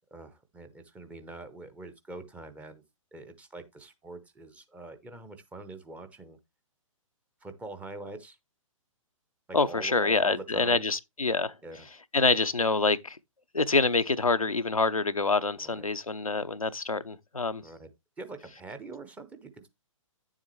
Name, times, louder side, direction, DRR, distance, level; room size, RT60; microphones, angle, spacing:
voice 1, 0.1-2.8 3.1-6.4 7.4-8.4 9.5-10.8 11.6-11.9 12.2-12.4 15.6-15.9 17.6-17.9 18.2-19.7, right 2 dB, 10° right, 0.8 m, -44 dB
voice 2, 9.5-11.5 12.1-13.2 13.5-17.6, left 3 dB, 90° left, 0.6 m, -26 dB
9.4 x 7.3 x 3.1 m
figure-of-eight pair, 125°, 17 cm